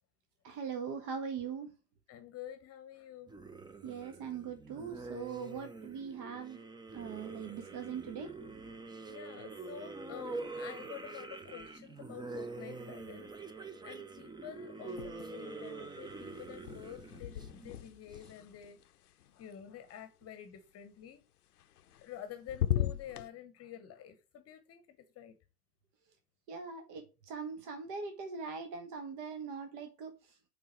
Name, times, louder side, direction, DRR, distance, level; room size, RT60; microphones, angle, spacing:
voice 1, 0.4-1.7 3.8-6.6 6.9-8.3 26.5-30.1, right 6 dB, 45° right, 1.3 m, -41 dB
voice 2, 2.1-3.3 9.1-21.2 22.0-25.3, left 10 dB, 30° left, 1.0 m, -49 dB
sound 1, 3.3-18.2, right 3 dB, 10° right, 0.7 m, -45 dB
sound 2, 14.9-15.6 15.9-20.0 21.6-22.2 22.5-23.3, left 11 dB, 75° left, 0.7 m, -38 dB
8.6 x 3.7 x 4.5 m
figure-of-eight pair, 80°, 45 cm